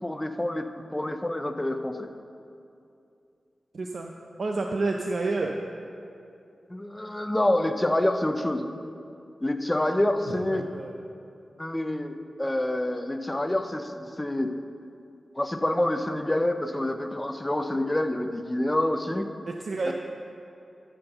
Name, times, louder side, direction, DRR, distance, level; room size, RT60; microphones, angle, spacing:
voice 1, 0.0-2.1 6.7-8.7 9.4-10.7 11.6-14.5 15.4-19.2 19.8-19.9, left 1 dB, 15° left, 7 dB, 0.5 m, -27 dB
voice 2, 3.7-4.1 4.4-5.5 10.5-10.9 19.5-19.9, right 3 dB, 55° right, 1 dB, 0.5 m, -29 dB
12.5 x 4.4 x 6.6 m, 2.6 s
wide cardioid pair, 145°, 0 cm